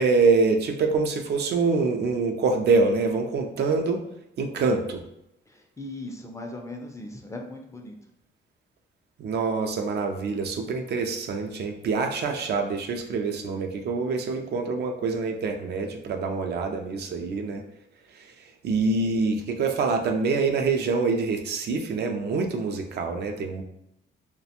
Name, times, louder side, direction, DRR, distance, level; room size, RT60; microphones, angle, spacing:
voice 1, 0.0-4.0 4.4-5.0 9.2-17.6 18.1-23.6, right 4 dB, 55° right, 4 dB, 0.4 m, -25 dB
voice 2, 5.5-8.0, left 2 dB, 15° left, 2 dB, 0.4 m, -38 dB
2.4 x 2.2 x 2.8 m, 0.80 s
cardioid pair, 90°, 20 cm